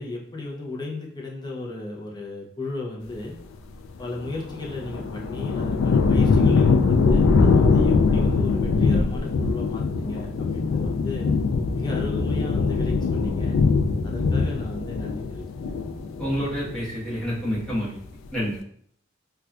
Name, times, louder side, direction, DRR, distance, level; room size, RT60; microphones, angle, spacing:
voice 1, 0.0-3.3 4.0-11.3 11.7-13.6 14.0-15.7, left 2 dB, 20° left, -3 dB, 0.6 m, -35 dB
sound 1, 4.2-17.0 17.3-17.9, left 4 dB, 80° left, 0.3 m, -22 dB
voice 2, 16.2-18.0 18.3-18.5, equal, 5° left, -9 dB, 1.3 m, -28 dB
4.1 x 2.3 x 2.3 m, 0.64 s
head